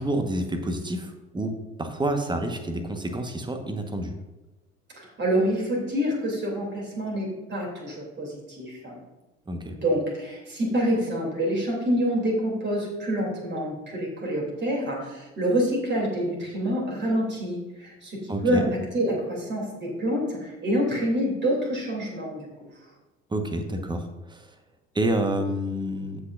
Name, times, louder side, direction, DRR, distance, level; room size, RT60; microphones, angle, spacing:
voice 1, 0.0-1.5 1.8-4.1 9.5-9.8 18.3-18.6 23.3-24.5 24.9-26.2, right 1 dB, 15° right, 5 dB, 1.3 m, -28 dB
voice 2, 5.0-9.0 9.7-18.6 18.9-22.5, equal, 35° right, -2 dB, 3.0 m, -27 dB
16.0 x 5.9 x 2.5 m, 1.1 s
figure-of-eight pair, 55°, 33 cm